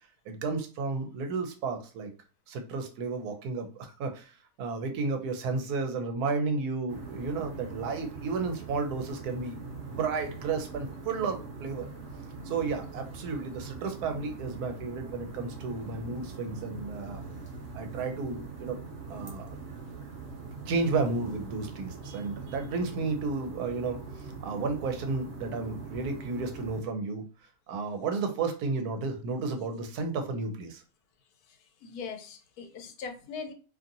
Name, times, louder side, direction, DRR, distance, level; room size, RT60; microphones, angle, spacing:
voice 1, 0.3-2.1 2.5-9.6 9.9-11.9 12.4-17.2 17.7-18.8 19.1-19.5 20.6-27.2 27.7-30.8, right 4 dB, 85° right, 6 dB, 1.1 m, -32 dB
sound 1, 6.9-26.8, right 4 dB, 50° right, 0.9 m, -42 dB
voice 2, 31.8-33.5, left 5 dB, 80° left, 6 dB, 1.1 m, -40 dB
2.8 x 2.6 x 2.5 m, 0.35 s
omnidirectional pair, 1.6 m